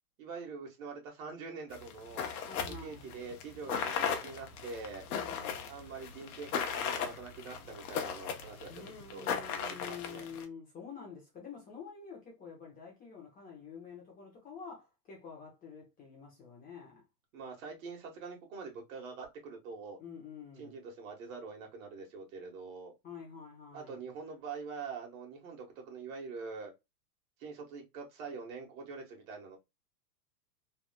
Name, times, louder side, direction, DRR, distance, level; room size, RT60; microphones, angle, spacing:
voice 1, 0.2-2.3 2.8-5.1 5.7-8.8 9.1-10.3 17.3-20.0 20.6-22.9 23.7-26.7 27.4-29.6, right 4 dB, 50° right, 1.5 m, -44 dB
sound 1, 1.7-10.4, left 7 dB, 60° left, 0.9 m, -37 dB
voice 2, 2.5-3.1 5.1-5.7 8.7-17.0 20.0-20.8 23.0-24.0, left 6 dB, 15° left, 0.8 m, -48 dB
3.3 x 2.5 x 2.2 m
hypercardioid pair, 140°, 50 cm